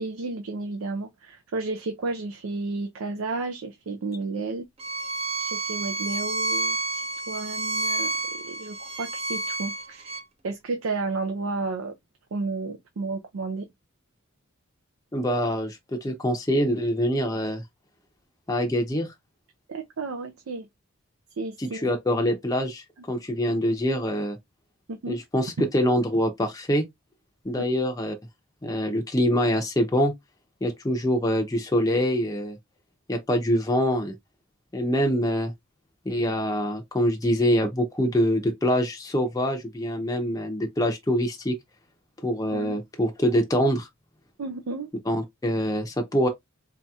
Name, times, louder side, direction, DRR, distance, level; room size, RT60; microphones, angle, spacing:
voice 1, 0.0-4.7 5.4-10.2 10.4-11.9 12.3-13.7 19.7-20.7 21.3-21.9 24.9-25.2 27.6-27.7 42.5-42.8 44.4-44.9, right 3 dB, 90° right, 0.5 m, -32 dB
Bowed string instrument, 4.8-10.2, right 2 dB, 30° right, 0.5 m, -30 dB
voice 2, 15.1-17.6 18.5-19.1 21.6-24.4 25.1-26.9 27.4-28.2 28.6-30.1 30.6-32.6 33.1-34.1 34.7-35.5 36.1-41.6 42.2-43.9 45.1-46.3, equal, 15° left, 0.6 m, -25 dB
4.1 x 2.8 x 2.3 m
head